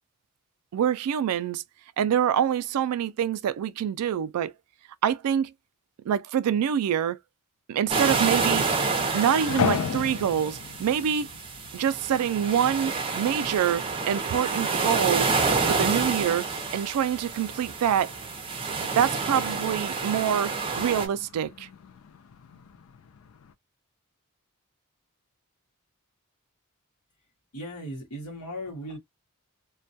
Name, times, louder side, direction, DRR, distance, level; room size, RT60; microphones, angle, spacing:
voice 1, 0.7-1.6 2.0-4.5 5.0-5.5 6.1-7.2 7.7-8.6 9.1-11.3 11.7-15.3 15.7-16.5 16.7-18.1 18.9-21.7, right 9 dB, 85° right, 0.3 m, -25 dB
sound 1, 7.9-21.1, right 4 dB, 25° right, 0.5 m, -28 dB
sound 2, 8.2-23.5, left 6 dB, 65° left, 0.3 m, -38 dB
voice 2, 27.5-29.0, equal, 80° left, 1.0 m, -37 dB
2.2 x 2.2 x 2.6 m
head